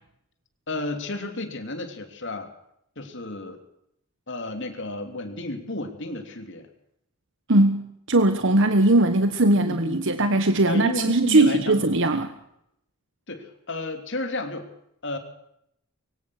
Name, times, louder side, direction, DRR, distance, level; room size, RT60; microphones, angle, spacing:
voice 1, 0.7-2.5 3.0-3.6 4.3-6.7 9.6-10.0 10.7-11.9 13.3-14.7 15.0-15.2, left 2 dB, 55° left, 6 dB, 3.2 m, -32 dB
voice 2, 7.5-12.3, right 2 dB, 60° right, 9 dB, 1.3 m, -20 dB
23.0 x 17.5 x 6.5 m, 0.76 s
head